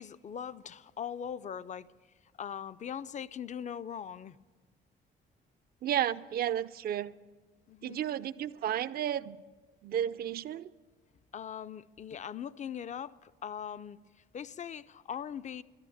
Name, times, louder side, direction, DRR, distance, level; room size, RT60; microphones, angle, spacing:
voice 1, 0.0-1.9 2.2-4.4 7.7-8.0 11.3-14.0 14.3-15.6, left 8 dB, 35° left, 0.4 m, -40 dB
voice 2, 5.8-7.1 7.8-9.4 9.8-10.7, right 10 dB, 50° right, 0.4 m, -32 dB
13.5 x 11.0 x 7.2 m
cardioid pair, 90°, 20 cm